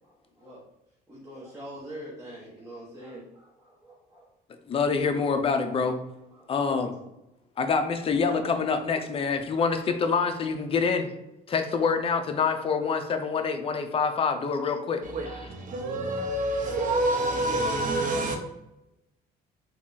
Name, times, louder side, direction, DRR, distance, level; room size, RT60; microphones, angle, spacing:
voice 1, 0.0-0.6 1.1-4.3 5.7-5.8 6.3-6.9 8.4-8.5 9.5-9.6 12.8-12.9 15.5-16.0, right 1 dB, 15° right, 1.0 m, -45 dB
voice 2, 4.7-6.0 6.5-6.9 7.6-11.1 11.5-15.0, left 5 dB, 35° left, 0.5 m, -26 dB
voice 3, 15.0-18.4, right 1 dB, 50° right, 0.8 m, -27 dB
3.4 x 2.3 x 3.9 m
cardioid pair, 110°, 17 cm